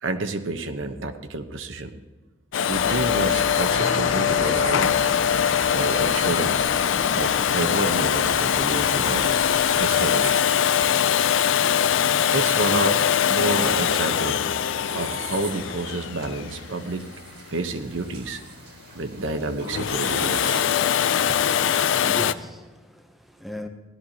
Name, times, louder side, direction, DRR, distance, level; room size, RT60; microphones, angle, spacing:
voice 1, 0.0-1.9 2.7-5.1 5.7-6.6 7.1-9.2 9.7-10.4 12.3-13.0 13.3-14.4 14.9-17.1 17.5-18.4 18.9-20.7, right 2 dB, 75° right, 0.9 m, -29 dB
Domestic sounds home sounds, 2.5-17.3 19.6-22.3, left 9 dB, 70° left, 0.4 m, -22 dB
sound 1, 2.7-9.9, left 2 dB, 35° left, 1.5 m, -35 dB
sound 2, 4.1-21.6, right 4 dB, 55° right, 1.8 m, -44 dB
voice 2, 21.3-23.7, equal, ahead, 0.6 m, -38 dB
16.5 x 12.0 x 2.8 m
head